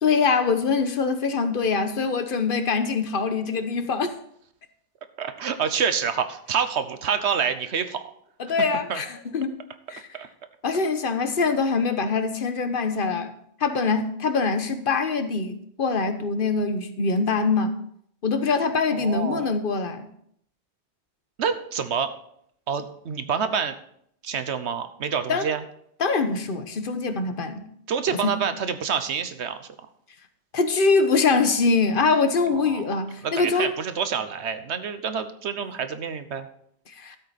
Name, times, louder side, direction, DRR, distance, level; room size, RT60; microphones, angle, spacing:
voice 1, 0.0-4.1 8.4-9.6 9.9-10.1 10.6-13.3 13.6-17.8 18.2-20.0 25.3-25.4 26.0-27.6 28.1-28.3 30.5-33.7 36.9-37.2, left 4 dB, 50° left, 9 dB, 1.1 m, -23 dB
voice 2, 5.2-8.0 8.9-9.0 10.2-10.3 18.9-19.5 21.4-22.1 22.7-23.7 24.2-25.6 27.9-29.7 32.6-32.8 33.2-36.5, right 7 dB, 80° right, 10 dB, 1.2 m, -27 dB
13.0 x 8.0 x 4.2 m, 0.69 s
omnidirectional pair, 1.1 m